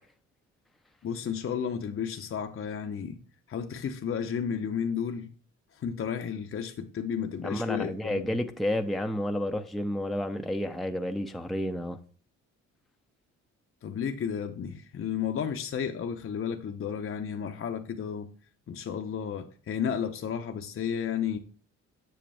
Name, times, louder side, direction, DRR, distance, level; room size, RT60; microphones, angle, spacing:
voice 1, 1.0-3.2 3.5-5.3 5.7-8.4 13.8-18.3 18.7-21.4, left 7 dB, 45° left, 0.8 m, -32 dB
voice 2, 7.4-12.0, left 1 dB, ahead, 0.7 m, -30 dB
7.8 x 6.6 x 3.4 m
cardioid pair, 90°, 30 cm